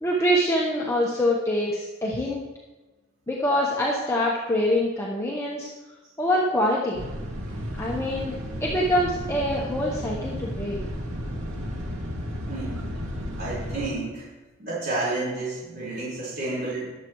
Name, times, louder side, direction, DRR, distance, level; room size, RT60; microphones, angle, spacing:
voice 1, 0.0-2.4 3.3-5.7 6.2-7.0 7.8-8.3 8.6-10.8, equal, 15° left, -4 dB, 1.1 m, -24 dB
sound 1, 6.9-13.9, equal, 90° right, 2.1 m, -33 dB
voice 2, 12.5-12.9 13.4-14.3 14.6-16.9, right 2 dB, 50° right, -9 dB, 4.5 m, -30 dB
20.5 x 7.6 x 3.1 m, 1.2 s
head